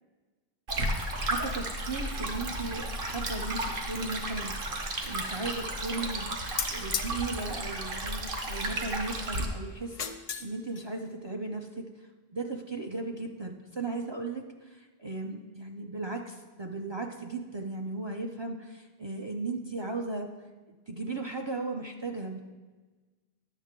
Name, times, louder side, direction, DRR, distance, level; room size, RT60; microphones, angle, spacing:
Stream, 0.7-9.5, right 1 dB, 55° right, 1.0 m, -33 dB
voice 1, 1.2-6.4 6.7-20.3 20.7-22.4, right 3 dB, 40° right, 3 dB, 0.4 m, -36 dB
sound 1, 6.6-7.1 8.4-8.8 9.8-10.5 10.8-10.9, left 7 dB, 50° left, 0.5 m, -34 dB
10.0 x 6.4 x 3.6 m, 1.3 s
omnidirectional pair, 1.1 m